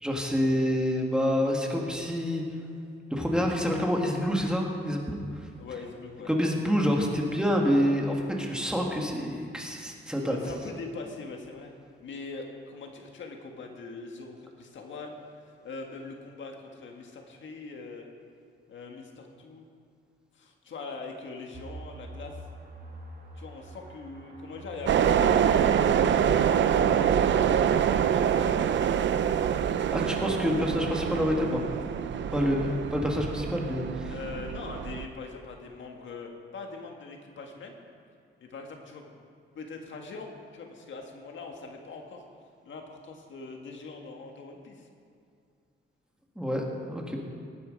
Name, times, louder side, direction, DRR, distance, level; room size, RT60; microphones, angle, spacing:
voice 1, 0.0-2.4 3.1-5.2 6.3-10.4 29.9-31.6 32.3-34.1 46.4-47.2, equal, 5° right, 0 dB, 1.8 m, -27 dB
voice 2, 5.6-6.3 10.2-11.7 12.0-15.2 15.5-18.1 18.7-19.7 20.3-22.3 23.4-25.8 26.4-28.5 32.1-32.3 34.1-37.8 38.4-39.1 39.5-42.2 42.6-44.9, left 4 dB, 75° left, 2 dB, 1.8 m, -42 dB
sound 1, 21.5-28.3, right 2 dB, 50° right, 2.2 m, -46 dB
sound 2, 24.9-35.0, right 8 dB, 70° right, 0.6 m, -25 dB
18.5 x 9.5 x 5.3 m, 2.3 s
wide cardioid pair, 125°, 20 cm